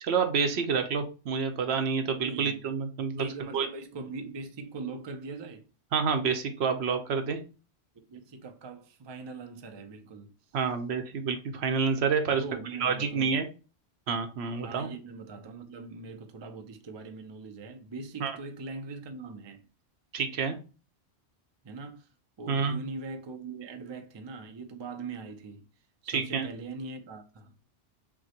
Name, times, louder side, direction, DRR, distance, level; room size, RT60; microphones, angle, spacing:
voice 1, 0.0-3.3 3.5-3.7 5.9-7.4 10.5-12.4 12.8-13.5 14.1-14.9 18.2-18.4 20.1-20.6 22.5-22.8 26.1-26.5, right 5 dB, 75° right, 0.9 m, -28 dB
voice 2, 2.2-2.7 3.2-5.6 7.9-10.3 12.3-13.4 14.6-19.7 21.6-22.1 22.4-25.7 26.0-27.5, right 3 dB, 40° right, 0.4 m, -41 dB
6.1 x 2.2 x 2.8 m
omnidirectional pair, 1.1 m